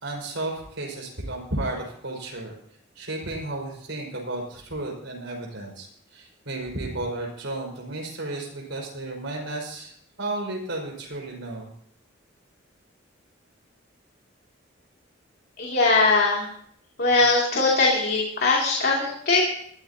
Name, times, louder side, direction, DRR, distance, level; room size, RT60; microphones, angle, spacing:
voice 1, 0.0-2.5 3.0-11.7, right 2 dB, 65° right, -1 dB, 5.2 m, -33 dB
voice 2, 15.6-16.5 17.0-19.4, left 3 dB, 50° left, -3 dB, 2.7 m, -21 dB
21.5 x 14.0 x 2.9 m, 0.65 s
head